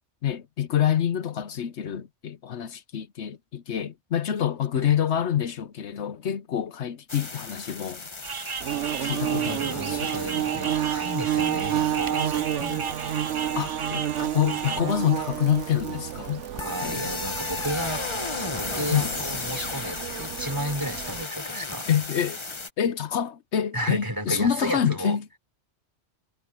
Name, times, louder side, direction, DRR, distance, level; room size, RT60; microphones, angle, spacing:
voice 1, 0.2-8.0 9.0-10.1 13.5-16.4 16.8-17.1 18.9-19.1 21.9-22.4 22.8-25.2, left 9 dB, 75° left, 1.1 m, -27 dB
sound 1, 7.1-22.7, left 3 dB, 25° left, 1.1 m, -36 dB
sound 2, 8.2-14.8, right 6 dB, 35° right, 0.5 m, -35 dB
Bird / Buzz, 8.6-21.2, right 11 dB, 85° right, 1.1 m, -30 dB
voice 2, 8.9-12.9 16.5-18.1 18.5-21.9 23.7-25.2, equal, 15° right, 4.1 m, -33 dB
omnidirectional pair, 1.2 m